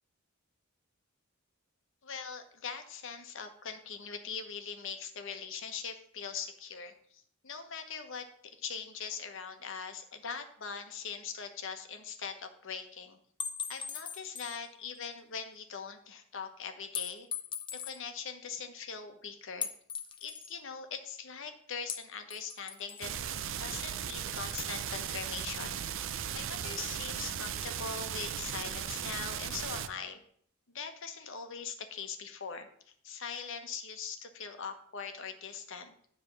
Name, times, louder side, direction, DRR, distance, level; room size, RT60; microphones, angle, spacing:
voice 1, 2.0-8.3 8.6-13.2 13.7-17.3 17.7-19.7 20.2-23.1 23.6-25.8 26.3-30.2 30.7-32.7 33.0-35.9, left 6 dB, 65° left, 7 dB, 1.0 m, -41 dB
sound 1, 13.4-14.7 15.0-15.1 17.0-18.0 19.6-20.6 21.9-23.2 24.6-25.3, left 7 dB, 25° left, 0.6 m, -39 dB
sound 2, 23.0-29.9, right 9 dB, 65° right, 0.5 m, -37 dB
9.9 x 3.4 x 6.7 m, 0.62 s
head